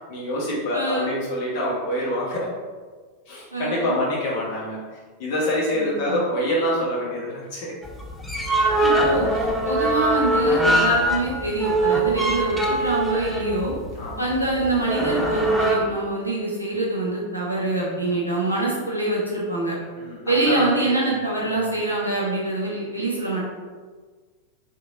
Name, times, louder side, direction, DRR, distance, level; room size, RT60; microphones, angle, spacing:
voice 1, 0.1-2.5 3.3-4.8 5.2-7.7 8.8-8.9 9.3-9.5 14.0-14.3 18.1-18.2 20.0-21.2 21.5-21.7, left 1 dB, 50° left, -5 dB, 1.1 m, -26 dB
voice 2, 0.7-1.1 3.5-3.9 5.7-6.2 8.8-9.3 9.6-13.7 14.2-19.7 20.3-23.4, right 2 dB, 85° right, -5 dB, 0.9 m, -25 dB
sound 1, 7.8-15.8, right 1 dB, 5° left, 0.4 m, -22 dB
3.3 x 2.8 x 2.6 m, 1.5 s
figure-of-eight pair, 90°, 0 cm